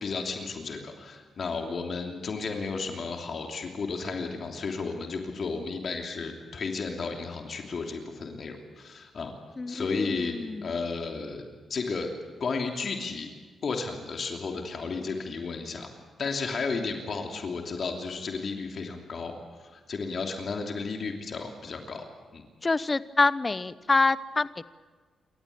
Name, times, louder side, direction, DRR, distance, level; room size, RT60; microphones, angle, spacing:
voice 1, 0.0-9.3 9.7-10.3 10.6-12.1 12.4-13.3 13.6-15.9 16.2-19.3 19.7-22.0 22.3-22.4, left 4 dB, 60° left, 3 dB, 3.0 m, -33 dB
voice 2, 9.6-10.8 22.6-24.6, left 3 dB, 30° left, 16 dB, 0.9 m, -26 dB
28.0 x 14.0 x 8.6 m, 1.4 s
cardioid pair, 65°, 0 cm